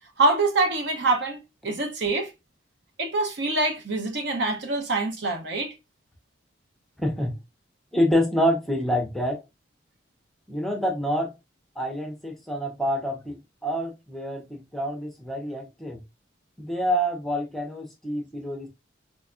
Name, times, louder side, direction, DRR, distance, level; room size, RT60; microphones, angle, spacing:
voice 1, 0.2-2.3 3.0-5.7, right 2 dB, 65° right, 0.7 m, -25 dB
voice 2, 7.0-7.4 7.9-9.4 10.5-11.3 11.8-16.0 16.6-18.7, equal, ahead, 0.5 m, -27 dB
4.1 x 2.3 x 2.3 m
head